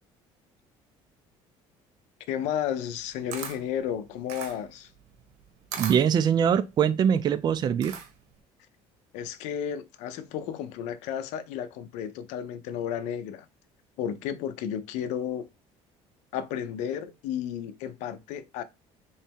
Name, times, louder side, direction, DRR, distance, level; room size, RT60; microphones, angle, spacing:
voice 1, 2.3-4.9 9.1-13.5 14.0-15.5 16.3-18.6, left 9 dB, 85° left, 0.6 m, -33 dB
Camera, 2.9-8.4, right 7 dB, 75° right, 1.1 m, -40 dB
voice 2, 5.8-8.0, right 8 dB, 35° right, 0.4 m, -23 dB
3.4 x 3.1 x 4.5 m
cardioid pair, 130°, 12 cm